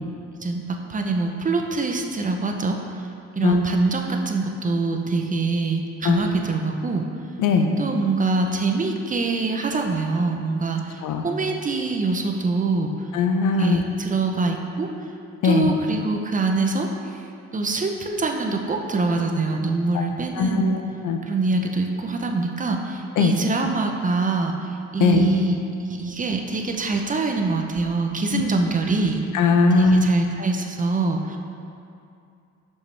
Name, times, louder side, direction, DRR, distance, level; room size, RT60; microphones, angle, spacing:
voice 1, 0.4-2.8 3.4-7.1 7.8-12.9 13.6-14.9 15.4-16.9 17.5-20.8 21.2-29.2 29.7-31.4, right 3 dB, 25° right, 3 dB, 0.6 m, -24 dB
voice 2, 7.4-7.7 11.0-11.2 13.1-13.8 15.4-15.7 20.4-21.2 23.2-23.3 25.0-25.2 28.3-28.4 29.3-29.9, left 5 dB, 80° left, 4 dB, 0.6 m, -20 dB
6.4 x 5.6 x 3.3 m, 2.5 s
cardioid pair, 90°, 30 cm